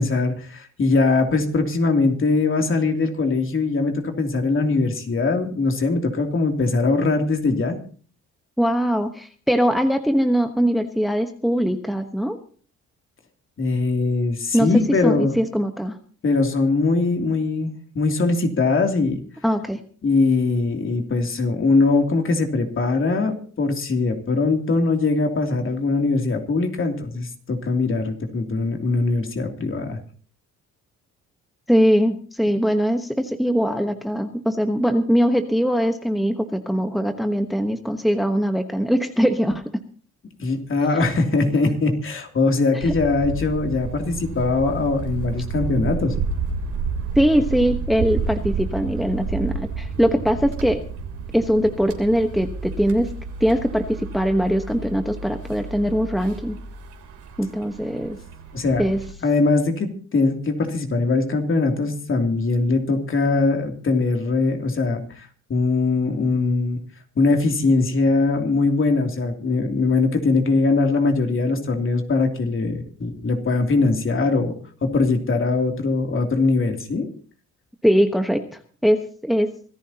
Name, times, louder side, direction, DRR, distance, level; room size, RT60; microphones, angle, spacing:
voice 1, 0.0-7.8 13.6-15.4 16.2-19.2 20.0-30.0 40.4-46.1 57.9-58.0 58.5-58.8 59.2-66.8 67.2-74.5 74.8-77.1, left 3 dB, 45° left, 4 dB, 3.0 m, -21 dB
voice 2, 8.6-12.4 14.5-16.0 19.4-19.8 31.7-39.6 42.9-43.0 47.1-50.8 51.3-53.1 53.4-56.6 57.4-58.2 58.8-59.0 77.8-78.4 78.8-79.5, equal, ahead, 7 dB, 1.2 m, -21 dB
sound 1, 42.8-59.1, right 4 dB, 75° right, 3.3 m, -31 dB
25.5 x 14.0 x 2.9 m, 0.43 s
cardioid pair, 90°, 30 cm